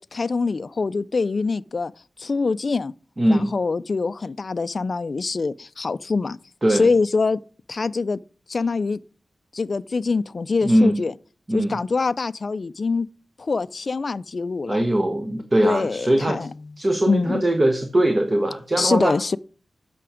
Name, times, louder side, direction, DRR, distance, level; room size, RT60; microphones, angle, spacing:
voice 1, 0.0-1.9 2.2-2.9 3.3-6.4 6.7-7.4 7.7-8.2 8.5-9.0 9.5-11.1 11.5-13.1 13.4-14.8 15.6-16.5 17.1-17.4 18.8-19.4, left 4 dB, 50° left, 0.4 m, -24 dB
voice 2, 3.2-3.5 6.6-6.9 10.6-11.0 11.5-11.8 14.7-16.5 16.8-19.2, right 1 dB, 25° right, 1.1 m, -21 dB
8.5 x 6.0 x 4.9 m
wide cardioid pair, 130°, 0 cm